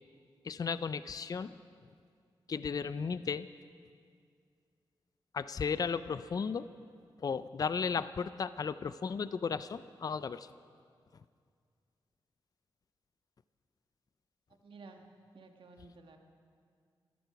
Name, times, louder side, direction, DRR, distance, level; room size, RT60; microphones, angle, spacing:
voice 1, 0.4-1.5 2.5-3.5 5.3-6.7 7.2-10.5, left 6 dB, 45° left, 14 dB, 0.4 m, -35 dB
voice 2, 14.5-15.1 15.3-16.2, right 3 dB, 70° right, 4 dB, 1.4 m, -53 dB
14.0 x 12.5 x 5.8 m, 2.2 s
wide cardioid pair, 95°, 9 cm